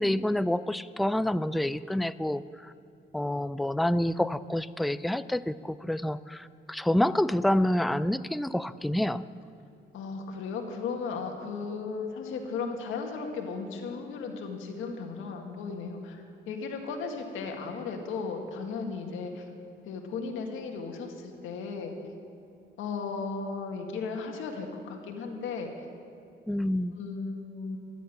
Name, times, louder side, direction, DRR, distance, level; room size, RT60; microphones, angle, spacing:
voice 1, 0.0-2.7 3.1-9.2 26.5-27.0, left 1 dB, ahead, 14 dB, 0.3 m, -28 dB
voice 2, 9.9-19.4 19.9-21.9 22.8-25.7 27.0-27.8, left 4 dB, 85° left, 3 dB, 1.9 m, -35 dB
12.5 x 8.2 x 9.9 m, 2.6 s
cardioid pair, 90°, 20 cm